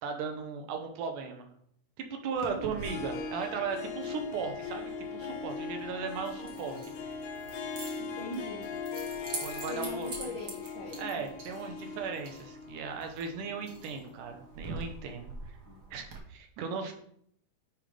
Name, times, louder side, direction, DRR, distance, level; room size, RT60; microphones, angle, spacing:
voice 1, 0.0-1.5 2.0-7.2 9.4-10.4 11.0-15.6 15.9-16.9, right 5 dB, 80° right, 5 dB, 2.4 m, -37 dB
Keys jangling, 2.3-16.2, right 3 dB, 55° right, 1.0 m, -46 dB
Harp, 2.7-14.6, left 5 dB, 85° left, 2.7 m, -40 dB
voice 2, 7.9-8.6 9.7-11.2 15.7-15.8, equal, 65° left, -3 dB, 1.3 m, -41 dB
9.6 x 5.0 x 3.4 m, 0.67 s
omnidirectional pair, 3.8 m